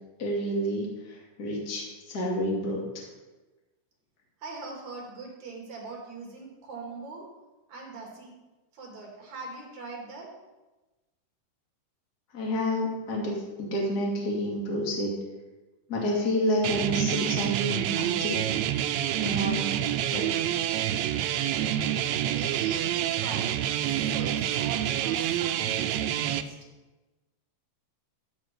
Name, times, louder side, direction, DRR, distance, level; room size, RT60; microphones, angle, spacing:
voice 1, 0.2-3.0 12.3-13.3 13.6-15.1 15.9-18.4 19.2-19.7 20.1-20.2, equal, 30° left, -2 dB, 2.6 m, -29 dB
voice 2, 4.4-7.2 7.7-8.3 8.7-10.3 22.2-26.6, right 3 dB, 60° right, -1 dB, 3.8 m, -41 dB
sound 1, 16.6-26.4, right 11 dB, 85° right, 1.6 m, -27 dB
14.0 x 8.1 x 5.3 m, 1.1 s
omnidirectional pair, 3.8 m